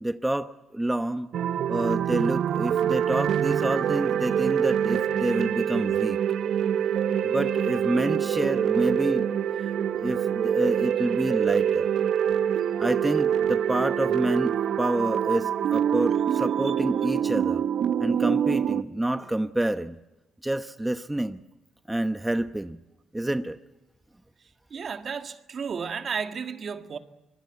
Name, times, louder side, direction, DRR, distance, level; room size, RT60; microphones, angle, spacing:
voice 1, 0.0-1.3 1.7-6.2 7.2-9.3 9.6-11.9 12.8-17.6 18.0-20.0 20.4-21.4 21.9-22.8 23.1-23.6, right 1 dB, 10° right, 0.9 m, -28 dB
sound 1, 1.3-18.8, right 9 dB, 70° right, 0.9 m, -25 dB
voice 2, 24.7-27.0, right 6 dB, 50° right, 1.8 m, -33 dB
25.5 x 22.5 x 8.3 m
cardioid pair, 90°, 0 cm